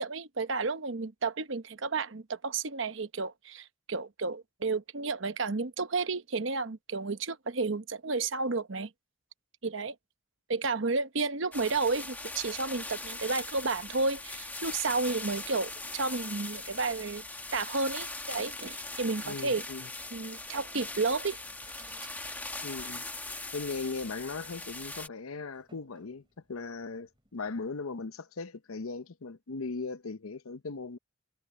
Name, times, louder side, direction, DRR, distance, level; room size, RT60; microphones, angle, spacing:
voice 1, 0.0-8.9 9.6-9.9 10.5-17.2 17.5-19.6 20.1-21.4, right 3 dB, 65° right, 1.0 m, -32 dB
sound 1, 11.5-25.1, left 2 dB, 10° left, 1.1 m, -40 dB
voice 2, 19.2-19.9 22.6-23.0 23.5-26.2 26.5-31.0, left 4 dB, 85° left, 0.8 m, -38 dB
sound 2, 20.0-27.4, right 4 dB, 25° right, 3.8 m, -62 dB
head